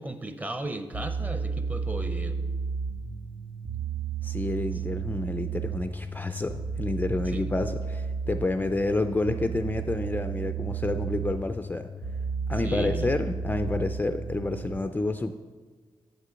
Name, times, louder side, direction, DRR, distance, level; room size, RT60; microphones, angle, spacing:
voice 1, 0.0-2.4 7.3-7.5 12.6-13.1, right 2 dB, 15° right, 9 dB, 0.6 m, -35 dB
sound 1, 0.9-14.8, right 5 dB, 85° right, 0.8 m, -33 dB
voice 2, 4.2-11.9 12.5-15.3, left 2 dB, 15° left, 8 dB, 0.3 m, -29 dB
7.5 x 6.7 x 6.2 m, 1.5 s
wide cardioid pair, 120°, 10 cm